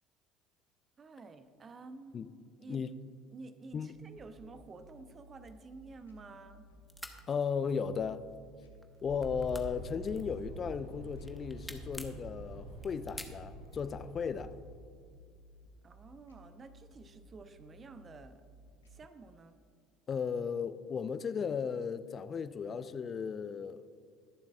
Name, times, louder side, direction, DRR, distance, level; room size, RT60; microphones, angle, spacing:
voice 1, 1.0-2.2 2.6-2.8 3.3-6.7 15.8-18.4 18.8-19.6, right 3 dB, 35° right, 10 dB, 0.8 m, -51 dB
sound 1, 3.9-19.0, right 1 dB, 85° left, 0.9 m, -58 dB
sound 2, 5.5-6.6 6.8-7.2 8.0-8.4 8.7-10.7 11.1-12.2 12.7-13.9, left 1 dB, 5° left, 1.0 m, -48 dB
voice 2, 7.3-8.2 9.0-14.5 20.1-23.8, left 6 dB, 40° left, 13 dB, 0.5 m, -35 dB
sound 3, 9.0-14.7, right 1 dB, 80° right, 1.7 m, -46 dB
21.5 x 7.3 x 2.4 m, 2.2 s
figure-of-eight pair, 60°, 0 cm